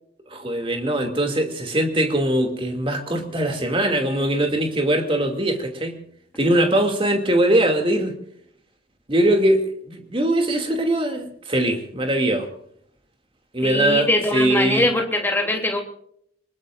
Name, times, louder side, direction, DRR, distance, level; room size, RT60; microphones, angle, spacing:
voice 1, 0.3-6.0 6.4-8.2 9.1-12.5 13.5-14.9, right 1 dB, 30° right, 4 dB, 2.5 m, -21 dB
voice 2, 13.6-15.8, left 1 dB, 10° left, 2 dB, 3.0 m, -22 dB
26.0 x 20.5 x 2.6 m, 0.68 s
head